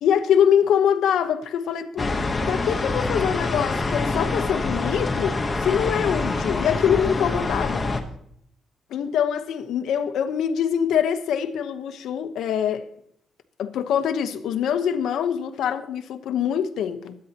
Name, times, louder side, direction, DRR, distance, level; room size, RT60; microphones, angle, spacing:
voice 1, 0.0-7.9 8.9-12.9 13.6-17.2, left 8 dB, 85° left, 1.0 m, -24 dB
sound 1, 2.0-8.0, left 3 dB, 20° left, 1.1 m, -25 dB
21.5 x 9.6 x 2.9 m
cardioid pair, 140°, 0 cm